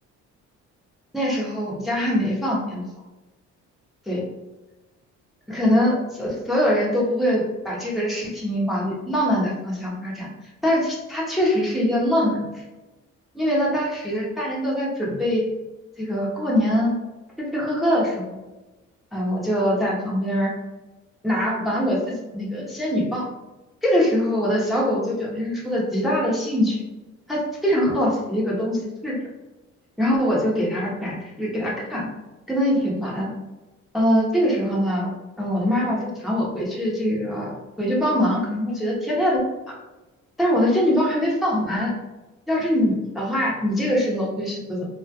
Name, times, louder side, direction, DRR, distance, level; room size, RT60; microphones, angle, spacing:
voice 1, 1.1-2.8 4.1-4.2 5.5-10.3 10.6-12.5 13.3-15.5 16.0-17.0 17.4-18.4 19.1-20.5 21.2-23.3 23.8-26.8 27.3-29.3 30.0-32.1 32.5-33.3 33.9-35.1 35.4-37.5 37.8-39.4 39.7-39.8 40.4-41.9 42.5-44.9, equal, ahead, -5 dB, 0.8 m, -23 dB
2.7 x 2.3 x 2.8 m, 1.1 s
cardioid pair, 90°, 30 cm